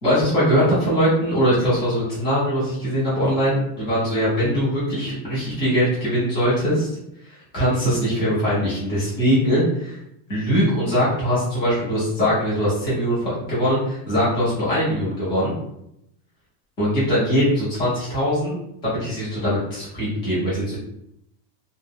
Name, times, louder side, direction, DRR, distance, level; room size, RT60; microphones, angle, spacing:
voice 1, 0.0-6.9 7.3-10.0 10.3-15.5 16.8-18.6 18.8-20.8, equal, 10° left, -9 dB, 0.5 m, -21 dB
2.7 x 2.1 x 3.4 m, 0.78 s
supercardioid pair, 180°, 50 cm